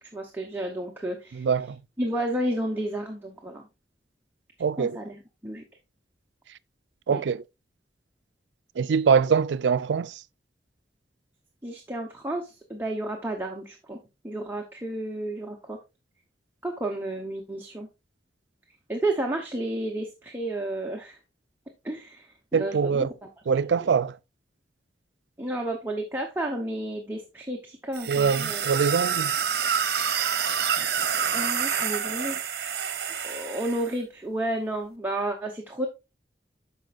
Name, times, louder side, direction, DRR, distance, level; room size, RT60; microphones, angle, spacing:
voice 1, 0.0-1.5 2.0-3.7 4.8-5.6 7.1-7.2 11.6-14.0 14.2-15.8 16.6-17.9 18.9-21.2 21.8-22.3 22.5-23.1 25.4-28.6 31.3-32.4 33.2-35.9, right 1 dB, 10° right, 0.9 m, -31 dB
voice 2, 1.3-1.8 4.6-5.0 7.1-7.4 8.8-10.2 22.5-23.1 23.5-24.2 28.1-29.3, right 6 dB, 85° right, 0.4 m, -23 dB
sound 1, 27.9-33.9, right 7 dB, 60° right, 0.9 m, -27 dB
12.5 x 5.2 x 2.5 m
head